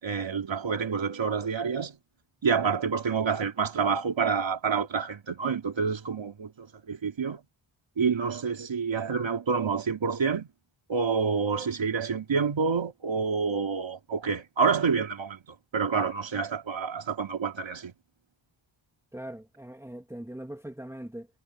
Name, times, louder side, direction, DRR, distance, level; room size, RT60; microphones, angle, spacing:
voice 1, 0.0-2.0 2.4-7.4 8.0-10.5 10.9-17.9, right 5 dB, 70° right, 3.5 m, -28 dB
voice 2, 19.1-21.3, right 1 dB, 5° right, 2.6 m, -41 dB
cardioid pair, 70°, 47 cm